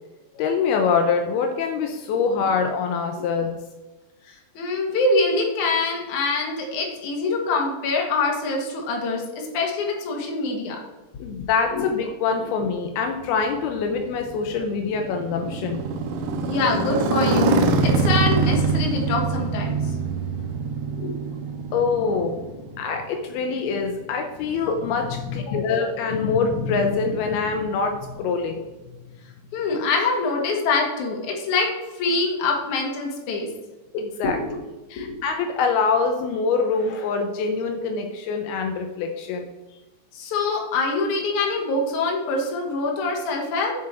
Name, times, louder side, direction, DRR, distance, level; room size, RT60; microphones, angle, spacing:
voice 1, 0.4-3.6 11.2-15.8 21.7-22.4 22.8-28.6 33.9-34.4 34.9-39.5, left 5 dB, 85° left, 5 dB, 2.6 m, -24 dB
voice 2, 4.5-10.8 11.7-11.8 14.4-14.5 16.5-19.8 21.0-21.1 25.5-25.6 29.5-31.7 32.0-33.5 34.4-34.5 35.0-35.2 40.1-43.7, left 3 dB, 60° left, 0 dB, 2.7 m, -24 dB
Motorcycle, 13.2-23.2, right 3 dB, 85° right, 2.7 m, -24 dB
7.6 x 7.2 x 4.4 m, 1.2 s
omnidirectional pair, 4.5 m